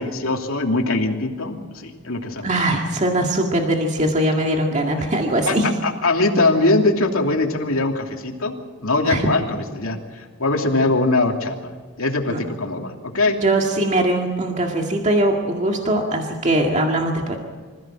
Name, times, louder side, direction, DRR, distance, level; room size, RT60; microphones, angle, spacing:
voice 1, 0.0-2.5 5.4-5.6 5.8-8.5 8.8-11.7 12.0-13.4, left 2 dB, 75° left, 2 dB, 2.9 m, -21 dB
voice 2, 2.4-5.7 9.0-9.3 12.3-12.4 13.4-17.4, right 1 dB, 35° right, 1 dB, 2.0 m, -21 dB
25.5 x 15.5 x 7.6 m, 1.5 s
head